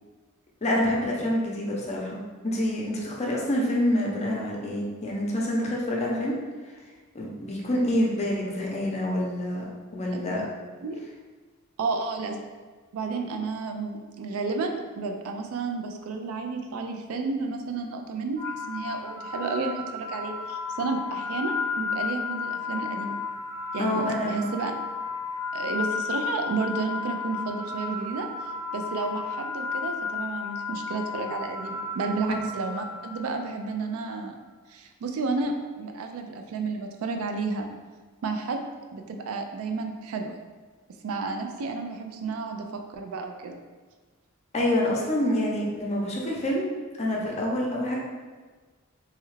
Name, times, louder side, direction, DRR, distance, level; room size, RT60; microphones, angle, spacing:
voice 1, 0.6-2.2 2.4-6.3 7.1-9.6 9.9-10.4 23.8-24.5 32.3-32.4 44.5-48.0, left 1 dB, 30° left, -3 dB, 0.5 m, -27 dB
voice 2, 10.1-10.5 10.8-11.0 11.8-12.4 12.9-23.2 23.7-24.7 25.5-28.3 28.7-34.3 34.7-37.7 38.2-38.6 38.9-40.4 41.0-43.6, right 4 dB, 75° right, 4 dB, 0.3 m, -31 dB
sound 1, 18.4-33.5, left 4 dB, 55° right, 0.8 m, -33 dB
3.1 x 2.3 x 3.1 m, 1.4 s
head